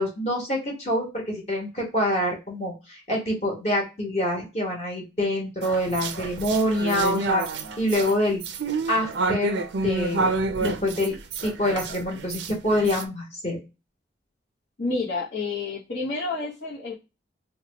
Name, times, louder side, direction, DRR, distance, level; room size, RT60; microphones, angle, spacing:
voice 1, 0.0-7.4 7.8-8.4 8.9-9.6 9.8-10.3 10.6-11.1 11.4-13.6, left 1 dB, 35° left, -1 dB, 1.2 m, -26 dB
sound 1, 5.6-13.1, right 3 dB, 70° right, 0.4 m, -29 dB
voice 2, 14.8-17.0, left 3 dB, 65° left, -6 dB, 0.9 m, -29 dB
2.8 x 2.2 x 3.8 m, 0.28 s
head